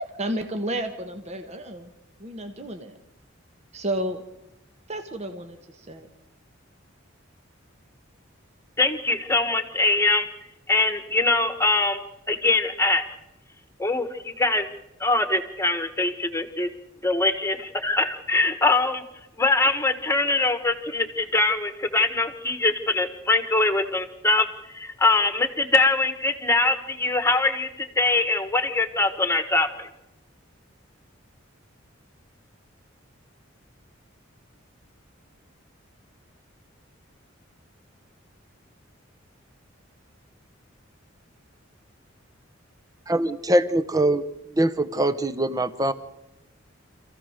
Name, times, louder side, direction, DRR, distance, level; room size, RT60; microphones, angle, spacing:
voice 1, 0.2-1.8 2.2-2.9 3.7-4.2 4.9-5.6 5.9-6.0, right 1 dB, 35° right, 6 dB, 1.3 m, -31 dB
voice 2, 8.8-10.2 10.7-12.0 12.3-13.0 13.8-14.7 15.0-16.7 17.0-19.0 19.4-24.5 24.7-29.9, left 2 dB, 15° left, 9 dB, 1.6 m, -23 dB
voice 3, 43.1-44.2 44.5-45.9, right 1 dB, 20° right, 11 dB, 0.9 m, -22 dB
27.0 x 15.5 x 6.6 m, 0.94 s
head